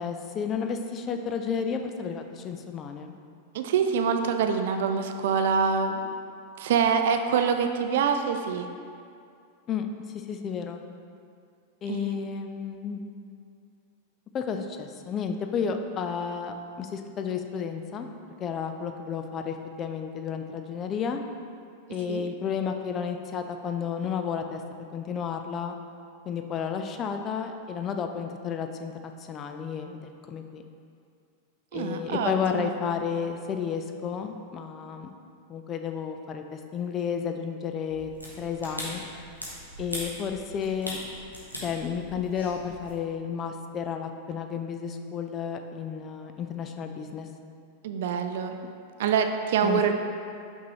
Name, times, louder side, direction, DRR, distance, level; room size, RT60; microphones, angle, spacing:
voice 1, 0.0-3.1 9.7-9.9 10.3-10.8 11.8-13.0 14.3-18.1 18.4-21.2 21.9-24.6 24.9-25.8 26.3-30.0 30.3-30.6 31.7-35.1 35.5-38.1 38.4-39.0 39.8-41.0 41.6-47.3 48.6-48.7 49.6-49.8, left 7 dB, 30° left, 6 dB, 0.4 m, -32 dB
voice 2, 3.5-6.0 6.6-8.7 11.9-12.2 22.1-22.2 31.7-32.7 47.8-48.5 49.0-49.9, right 6 dB, 55° right, 6 dB, 0.4 m, -25 dB
sound 1, 37.9-42.9, equal, 90° left, 1.2 m, -40 dB
5.9 x 5.4 x 3.1 m, 2.4 s
figure-of-eight pair, 90°, 0 cm